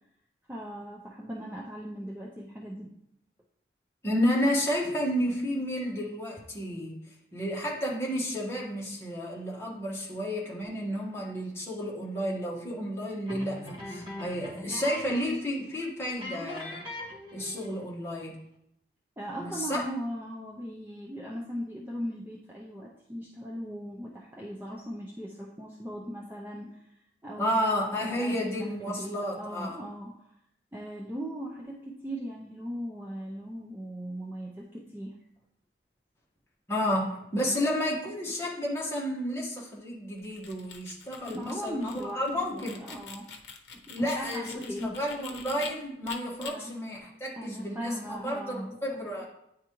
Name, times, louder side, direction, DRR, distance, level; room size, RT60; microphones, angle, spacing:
voice 1, 0.5-2.9 19.2-27.0 27.2-27.9 28.1-30.3 30.7-35.2 41.3-43.3 43.7-45.0 46.4-46.7 47.4-49.2, equal, 10° right, -4 dB, 0.5 m, -38 dB
voice 2, 4.0-16.9 17.3-18.4 19.3-19.8 27.4-29.8 36.7-42.8 43.9-49.2, equal, 15° left, -4 dB, 1.2 m, -31 dB
sound 1, 13.3-15.5 15.7-15.8 16.2-17.8, left 1 dB, 30° right, 1.4 m, -40 dB
sound 2, 40.2-45.7 46.1-46.5, left 5 dB, 70° left, 0.7 m, -45 dB
9.2 x 3.5 x 3.0 m, 0.78 s
head